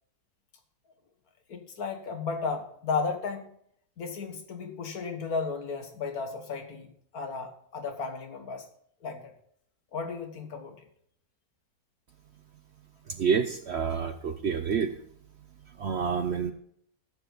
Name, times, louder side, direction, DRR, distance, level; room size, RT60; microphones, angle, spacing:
voice 1, 1.5-3.5 4.0-6.9 7.1-8.7 9.0-9.3 9.9-10.8, left 4 dB, 70° left, 6 dB, 1.8 m, -34 dB
voice 2, 13.2-14.9 15.8-16.5, right 6 dB, 60° right, 9 dB, 0.7 m, -28 dB
13.5 x 7.8 x 3.9 m, 0.67 s
omnidirectional pair, 1.7 m